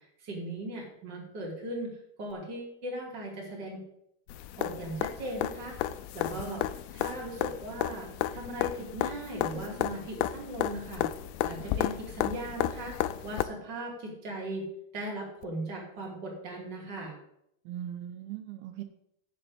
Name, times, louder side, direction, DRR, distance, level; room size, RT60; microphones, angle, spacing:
voice 1, 0.2-1.9 2.2-3.8 4.6-5.8 6.1-6.6 6.9-11.0 11.4-13.0 13.2-14.6 14.9-17.1, right 1 dB, 30° right, -2 dB, 2.7 m, -38 dB
sound 1, 4.3-13.4 15.4-15.5, left 13 dB, 80° left, 2.3 m, -33 dB
voice 2, 6.2-6.7 17.7-18.8, right 11 dB, 85° right, 7 dB, 2.7 m, -40 dB
7.0 x 6.6 x 7.9 m, 0.76 s
omnidirectional pair, 4.4 m